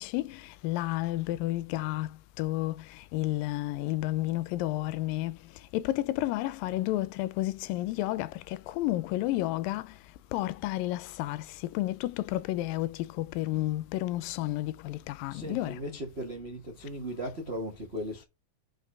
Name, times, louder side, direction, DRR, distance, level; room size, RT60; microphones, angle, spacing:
voice 1, 0.6-2.1 2.4-2.7 3.1-5.3 5.7-8.3 8.8-9.8 10.3-11.4 11.8-12.9 13.2-15.7, left 16 dB, 85° left, 2.2 m, -30 dB
voice 2, 15.3-18.2, equal, 50° right, 0.7 m, -37 dB
6.2 x 5.4 x 4.8 m
omnidirectional pair, 4.1 m